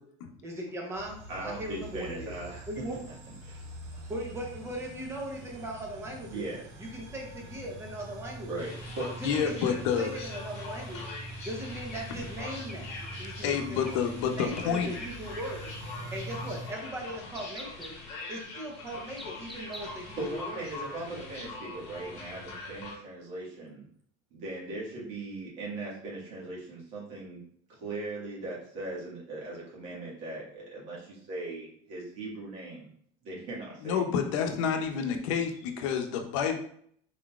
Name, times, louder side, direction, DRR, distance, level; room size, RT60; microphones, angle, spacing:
voice 1, 0.4-2.3 2.7-3.0 4.1-6.5 6.8-8.5 9.2-11.1 11.4-12.9 13.2-13.9 14.4-15.7 16.1-18.0 18.3-20.7 21.1-21.3, right 1 dB, 15° right, 0 dB, 0.8 m, -39 dB
sound 1, 0.9-16.7, right 1 dB, 70° right, 1.3 m, -44 dB
voice 2, 1.3-2.7 3.4-3.6 6.3-6.7 8.5-9.2 20.2-23.9 24.3-27.4 27.7-32.9 33.2-34.0, right 2 dB, 50° right, -5 dB, 1.7 m, -39 dB
sound 2, 8.6-22.9, left 3 dB, 40° left, 1.1 m, -43 dB
voice 3, 9.2-10.1 13.4-14.9 33.8-36.6, left 7 dB, 85° left, 5 dB, 0.7 m, -29 dB
sound 3, 9.6-9.7 11.1-13.6 13.9-14.1 14.4-15.1 15.4-15.5 16.1-16.4 17.3-20.1, equal, ahead, 0.4 m, -47 dB
3.9 x 3.7 x 2.4 m, 0.63 s
cardioid pair, 175°, 16 cm